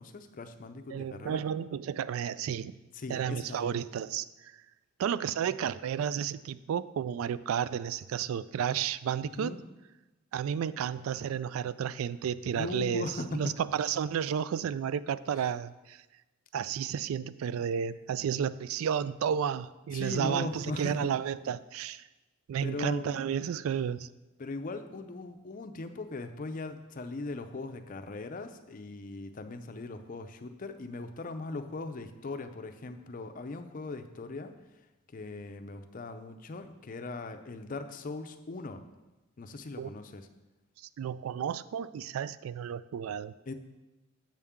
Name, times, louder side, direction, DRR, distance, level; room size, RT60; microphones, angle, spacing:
voice 1, 0.0-1.4 2.9-3.8 9.2-9.6 12.5-13.5 15.4-15.5 19.9-21.1 22.6-23.2 24.4-34.5 35.1-38.8 39.4-40.3 43.5-43.6, left 3 dB, 40° left, 8 dB, 0.5 m, -39 dB
voice 2, 0.9-2.7 3.1-4.5 5.0-9.6 10.3-16.0 16.5-22.1 22.5-24.1 39.8-39.9 41.0-43.3, right 8 dB, 85° right, 16 dB, 0.3 m, -32 dB
7.5 x 6.9 x 3.6 m, 1.1 s
head